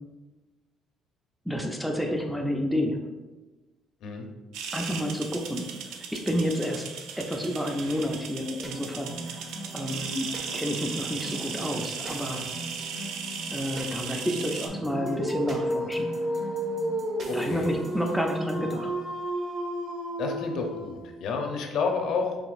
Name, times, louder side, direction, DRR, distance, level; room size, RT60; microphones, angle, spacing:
voice 1, 1.5-3.1 4.7-6.9 7.2-9.4 9.7-12.5 13.5-16.2 17.3-18.9, equal, ahead, 0 dB, 0.3 m, -30 dB
sound 1, 4.5-14.7, right 6 dB, 90° right, 0.4 m, -37 dB
sound 2, 8.6-18.9, right 1 dB, 40° right, 0.8 m, -41 dB
Dog, 14.8-21.1, right 1 dB, 65° right, 1.3 m, -31 dB
voice 2, 17.3-17.7 20.2-22.5, left 4 dB, 65° left, 3 dB, 0.6 m, -30 dB
4.8 x 3.3 x 2.5 m, 1.2 s
cardioid pair, 155°, 0 cm